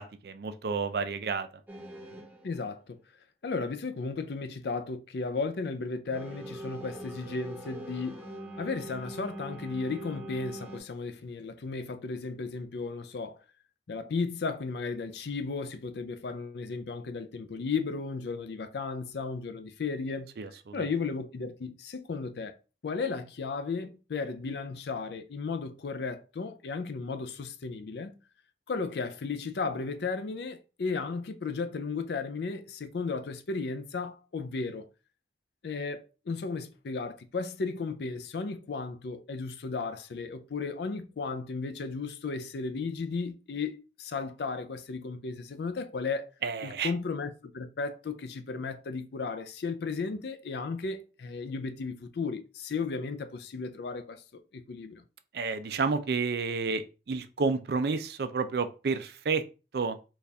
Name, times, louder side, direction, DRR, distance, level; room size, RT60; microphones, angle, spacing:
voice 1, 0.0-1.5 20.4-20.8 46.4-46.9 55.3-56.8 57.1-59.4 59.7-60.0, right 4 dB, 60° right, 0.4 m, -30 dB
sound 1, 1.7-2.6 6.1-10.8, right 1 dB, 10° right, 0.8 m, -43 dB
voice 2, 2.4-3.0 3.4-8.2 8.6-13.4 13.9-20.3 20.7-22.6 22.8-28.1 28.7-34.9 35.6-46.3 46.6-55.0, left 4 dB, 65° left, 0.4 m, -35 dB
4.1 x 2.4 x 3.3 m
head